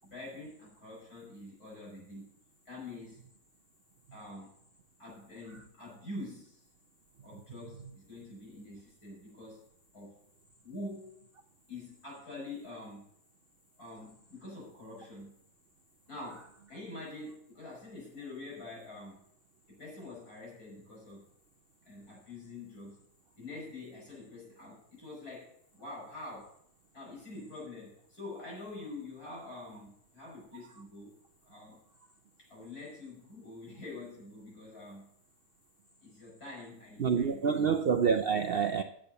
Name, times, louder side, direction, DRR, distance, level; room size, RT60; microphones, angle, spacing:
voice 1, 0.0-2.3 2.7-3.2 4.1-4.5 5.0-6.6 7.2-9.6 9.9-10.2 10.6-11.1 11.7-13.1 13.8-15.3 16.1-19.2 19.7-21.2 21.8-23.0 23.4-26.5 26.9-31.1 31.5-31.8 32.4-35.1 36.0-37.7, left 2 dB, 80° left, 6.1 m, -46 dB
voice 2, 37.0-38.8, right 6 dB, 65° right, 0.6 m, -27 dB
8.5 x 7.5 x 6.8 m
omnidirectional pair, 1.6 m